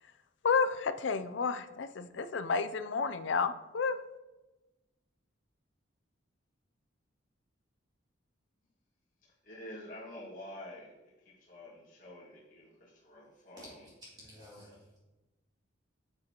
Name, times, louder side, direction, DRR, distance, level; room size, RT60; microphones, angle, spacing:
voice 1, 0.4-4.0, left 5 dB, 65° left, 12 dB, 0.4 m, -31 dB
voice 2, 9.2-13.7, left 1 dB, 40° left, -7 dB, 1.8 m, -48 dB
voice 3, 13.6-15.0, equal, 20° right, -7 dB, 2.9 m, -53 dB
9.1 x 7.6 x 2.9 m, 1.1 s
head